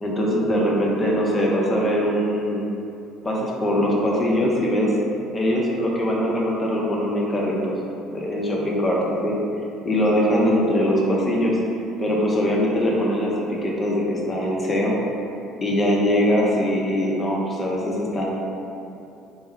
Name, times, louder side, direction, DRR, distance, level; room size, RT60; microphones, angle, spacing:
voice 1, 0.0-2.7 3.2-4.9 5.3-7.7 8.1-9.3 9.8-11.6 12.0-14.9 15.6-18.3, equal, 25° left, -3 dB, 0.6 m, -22 dB
3.3 x 2.0 x 3.0 m, 2.7 s
hypercardioid pair, 60°, 0 cm